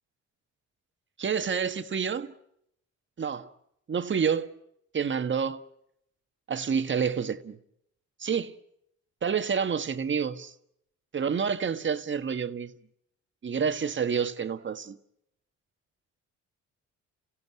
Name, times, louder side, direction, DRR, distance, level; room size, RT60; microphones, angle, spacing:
voice 1, 1.2-2.3 3.2-3.5 3.9-4.5 4.9-5.6 6.5-7.6 8.2-8.5 9.2-10.5 11.1-12.7 13.4-15.0, right 6 dB, 40° right, 1.5 m, -28 dB
29.5 x 16.5 x 9.5 m
cardioid pair, 90°, 30 cm